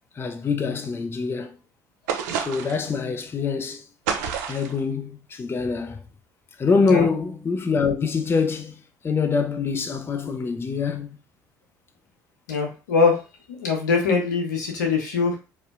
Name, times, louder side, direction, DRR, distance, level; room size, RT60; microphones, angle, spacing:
voice 1, 0.2-1.5 2.4-3.8 4.5-6.0 6.6-11.1, left 5 dB, 25° left, 0.4 m, -25 dB
sound 1, 2.1-2.9 4.1-4.8, right 7 dB, 75° right, 0.4 m, -28 dB
voice 2, 12.5-13.2 13.5-15.4, left 4 dB, 85° left, 0.7 m, -22 dB
2.6 x 2.1 x 2.4 m
hypercardioid pair, 65°, 9 cm